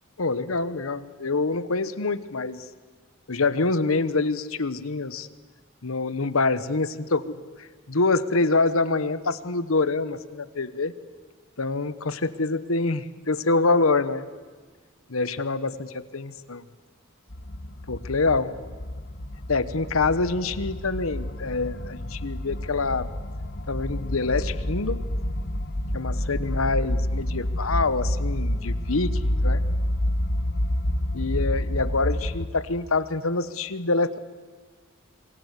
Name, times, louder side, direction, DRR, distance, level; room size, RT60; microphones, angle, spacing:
voice 1, 0.2-2.6 3.3-5.3 5.8-10.9 11.6-14.3 15.1-16.6 17.9-18.6 19.5-23.1 23.7-25.0 25.9-29.6 31.1-34.2, left 3 dB, 80° left, 14 dB, 1.2 m, -26 dB
sound 1, 17.3-32.5, left 1 dB, 55° left, 1.5 m, -28 dB
27.5 x 23.0 x 8.4 m, 1.4 s
head